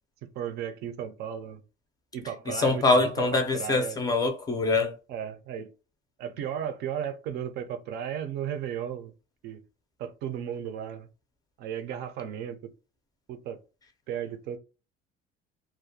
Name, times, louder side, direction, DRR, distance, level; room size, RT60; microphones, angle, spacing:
voice 1, 0.4-1.6 2.1-4.0 5.1-5.7 6.2-9.1 9.4-9.6 10.0-11.1 11.6-12.7 13.3-13.6 14.1-14.6, right 9 dB, 60° right, 0.4 m, -35 dB
voice 2, 2.5-4.9, left 3 dB, 20° left, 0.4 m, -24 dB
2.4 x 2.1 x 2.7 m
cardioid pair, 150°, 19 cm